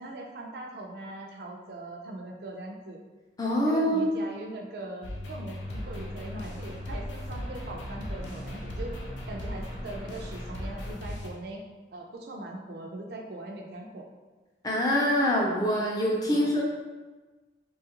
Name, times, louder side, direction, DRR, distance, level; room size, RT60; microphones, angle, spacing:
voice 1, 0.0-3.0 3.6-9.0 9.3-11.6 11.9-14.1 16.3-16.6, right 2 dB, 60° right, 1 dB, 0.4 m, -41 dB
voice 2, 3.4-4.1 14.6-16.6, equal, 20° left, -3 dB, 0.4 m, -25 dB
sound 1, 5.0-11.3, left 1 dB, 85° left, 0.5 m, -39 dB
sound 2, 5.6-10.9, equal, 40° left, 0.8 m, -42 dB
3.1 x 2.3 x 2.9 m, 1.3 s
head